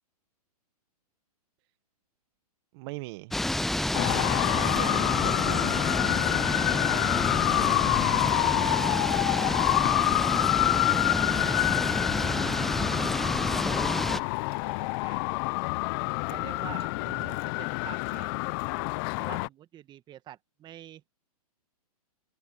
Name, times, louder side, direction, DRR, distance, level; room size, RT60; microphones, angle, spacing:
voice 1, 2.7-3.4 4.5-5.8 17.2-17.4, right 23 dB, 40° right, 1.3 m, -40 dB
sound 1, 3.3-14.2, left 1 dB, ahead, 0.4 m, -29 dB
Traffic noise roadway noise, 3.9-19.5, left 28 dB, 35° left, 0.6 m, -27 dB
voice 2, 4.8-5.1 6.9-7.1 7.5-15.2 16.3-16.9 17.3-18.3 19.2-21.0, right 11 dB, 20° right, 1.6 m, -47 dB
hypercardioid pair, 125°, 20 cm